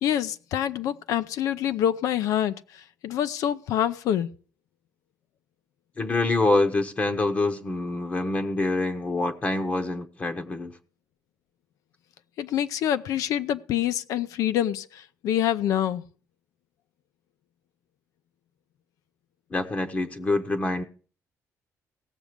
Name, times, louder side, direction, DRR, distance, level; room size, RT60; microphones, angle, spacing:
voice 1, 0.0-4.3 12.4-16.0, left 10 dB, 90° left, 0.6 m, -26 dB
voice 2, 6.0-10.7 19.5-20.8, left 2 dB, 25° left, 0.8 m, -26 dB
17.0 x 7.2 x 5.0 m
cardioid pair, 150°, 6 cm